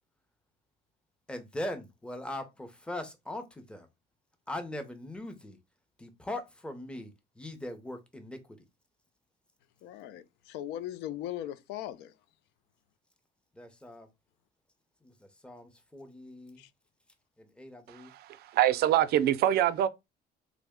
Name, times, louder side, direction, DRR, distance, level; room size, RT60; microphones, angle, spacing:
voice 1, 1.3-3.9 4.5-5.6 6.0-8.6 13.6-14.1 15.0-16.6 17.4-18.1, left 1 dB, 5° left, 0.6 m, -40 dB
voice 2, 9.8-12.1 16.6-16.7, left 12 dB, 90° left, 0.4 m, -39 dB
voice 3, 18.5-19.9, right 12 dB, 70° right, 0.4 m, -24 dB
3.5 x 2.1 x 3.5 m
cardioid pair, 110°, 17 cm